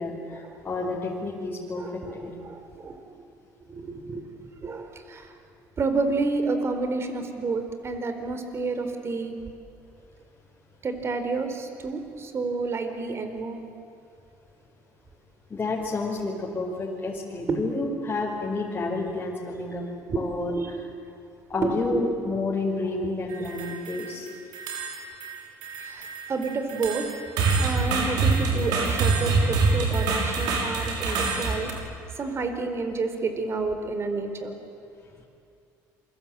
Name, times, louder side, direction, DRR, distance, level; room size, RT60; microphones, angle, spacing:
voice 1, 0.0-2.3 15.5-19.9 20.2-20.5 21.5-24.3, left 3 dB, 25° left, -4 dB, 5.2 m, -30 dB
voice 2, 1.8-3.2 3.7-4.3 4.6-5.3 5.8-9.4 10.8-13.7 17.5-17.6 20.1-20.2 20.5-20.7 21.6-22.0 25.8-27.1 27.6-31.7 32.2-34.5, right 3 dB, 40° right, 7 dB, 4.1 m, -30 dB
sound 1, 23.3-24.1 24.5-25.4 25.6-31.7, right 4 dB, 75° right, 6.0 m, -25 dB
27.5 x 23.5 x 9.0 m, 2.5 s
supercardioid pair, 85°, 7 cm